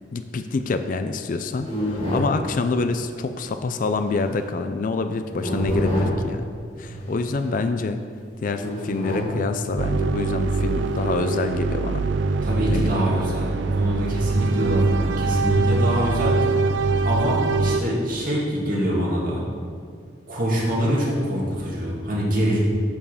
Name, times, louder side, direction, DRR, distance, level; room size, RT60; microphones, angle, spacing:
voice 1, 0.1-6.4 6.8-8.0 8.4-12.1 12.7-13.0, left 3 dB, 50° left, 8 dB, 0.4 m, -26 dB
sound 1, 1.6-2.3 4.1-4.3 5.3-6.3 6.9-7.5 8.6-9.3 10.2-11.0, equal, 30° left, 2.0 m, -27 dB
sound 2, 9.8-17.8, right 3 dB, 80° right, 0.4 m, -23 dB
voice 2, 12.4-16.5 17.0-19.4 20.3-22.6, equal, 50° right, -5 dB, 2.1 m, -25 dB
7.1 x 5.5 x 6.4 m, 2.2 s
head